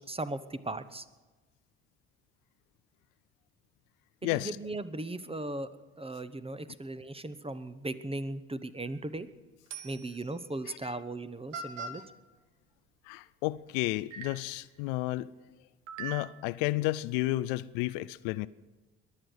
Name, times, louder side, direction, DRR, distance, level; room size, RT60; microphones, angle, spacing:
voice 1, 0.1-1.0 4.2-5.7 6.0-9.3 9.8-12.0, right 2 dB, 15° right, 1.0 m, -37 dB
sound 1, 8.9-9.2 9.7-10.3 11.1-11.2 11.5-12.1 13.5-13.6 14.1-14.6 15.9-16.6, right 5 dB, 85° right, 1.3 m, -42 dB
voice 2, 13.1-15.3 16.0-18.5, left 18 dB, 75° left, 0.5 m, -32 dB
22.0 x 7.8 x 6.5 m
hypercardioid pair, 50°, 35 cm